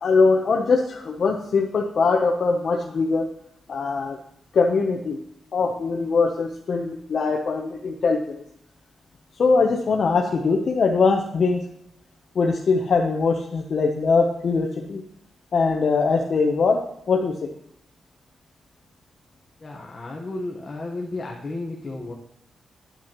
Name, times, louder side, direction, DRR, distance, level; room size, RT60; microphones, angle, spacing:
voice 1, 0.0-3.3 3.7-4.2 4.5-5.2 5.5-8.4 9.4-11.6 12.3-15.0 15.5-16.8 17.1-17.5, left 4 dB, 55° left, 2 dB, 0.8 m, -21 dB
voice 2, 19.6-22.1, left 2 dB, 30° left, -2 dB, 1.2 m, -33 dB
10.0 x 9.2 x 3.0 m, 0.70 s
wide cardioid pair, 120°, 0 cm